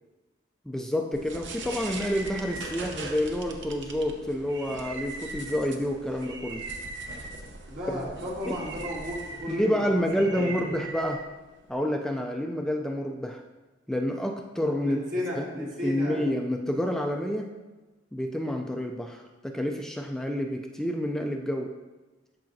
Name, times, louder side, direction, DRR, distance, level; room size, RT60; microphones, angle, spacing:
voice 1, 0.7-6.7 7.9-8.0 8.5-8.6 9.5-11.3 11.7-13.4 13.9-15.0 15.4-17.5 18.1-21.8, equal, 5° left, 3 dB, 0.3 m, -29 dB
sound 1, 1.1-11.7, right 3 dB, 65° right, 0.8 m, -40 dB
voice 2, 7.7-10.7 14.8-16.2, equal, 85° right, -7 dB, 2.7 m, -34 dB
13.0 x 4.8 x 2.7 m, 1.2 s
head